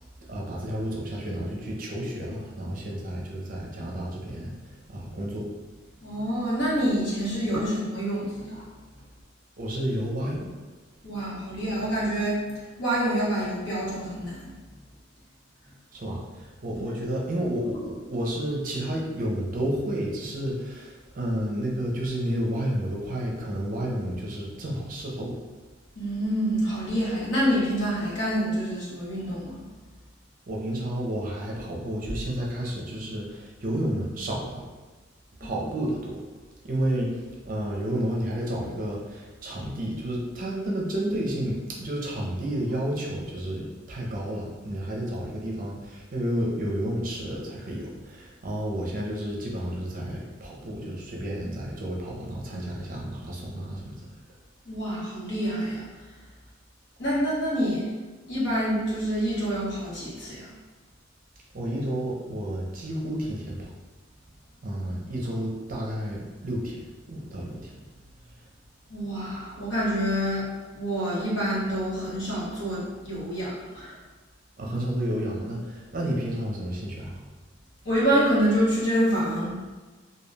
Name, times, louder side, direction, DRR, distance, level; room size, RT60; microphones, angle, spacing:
voice 1, 0.3-5.5 9.6-10.5 15.9-25.4 30.5-34.7 35.4-36.2 36.6-37.1 37.4-54.0 61.5-63.8 64.6-67.8 74.6-77.2, right 1 dB, 45° right, -3 dB, 0.5 m, -31 dB
voice 2, 6.0-8.6 11.0-12.4 12.8-14.5 25.9-29.6 35.4-35.5 54.7-55.8 57.0-57.9 58.3-60.5 68.9-70.5 70.7-73.9 77.8-79.6, equal, 65° left, -7 dB, 1.0 m, -27 dB
2.2 x 2.2 x 3.2 m, 1.3 s
head